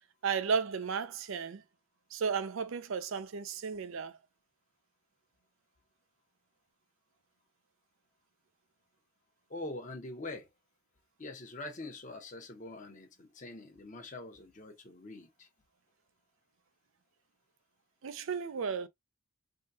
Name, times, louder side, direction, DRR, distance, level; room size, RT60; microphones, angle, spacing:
voice 1, 0.2-1.6 2.1-4.2 18.0-18.9, right 6 dB, 70° right, 0.5 m, -34 dB
voice 2, 9.5-10.5 11.2-15.5, left 2 dB, 35° left, 0.8 m, -44 dB
3.6 x 2.2 x 2.6 m
head